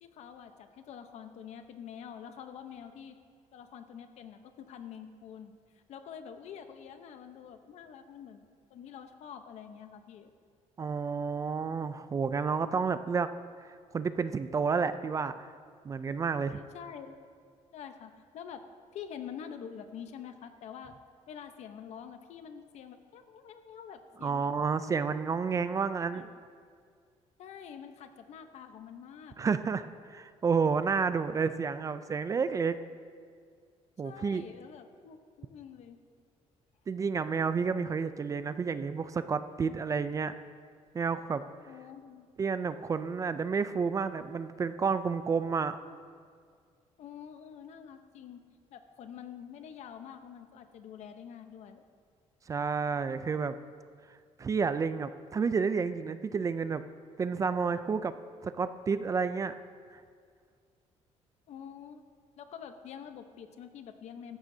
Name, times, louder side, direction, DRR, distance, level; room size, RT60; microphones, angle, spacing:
voice 1, 0.0-3.2 3.5-5.5 5.9-8.4 8.7-10.3 16.3-17.2 17.7-18.6 18.9-20.9 21.3-24.5 25.8-26.3 27.4-29.4 31.0-31.1 34.0-36.0 41.7-42.3 47.0-48.4 48.7-51.8 61.5-62.0 62.4-64.4, left 8 dB, 65° left, 8 dB, 0.9 m, -46 dB
voice 2, 10.8-13.3 13.9-15.5 15.8-16.6 24.2-26.3 29.4-32.8 34.0-34.4 36.9-40.3 40.9-41.4 42.4-45.8 52.5-53.5 54.4-56.8 57.2-58.1 58.4-59.6, right 5 dB, 25° right, 12 dB, 0.4 m, -30 dB
16.5 x 13.5 x 2.8 m, 2.1 s
cardioid pair, 135°, 12 cm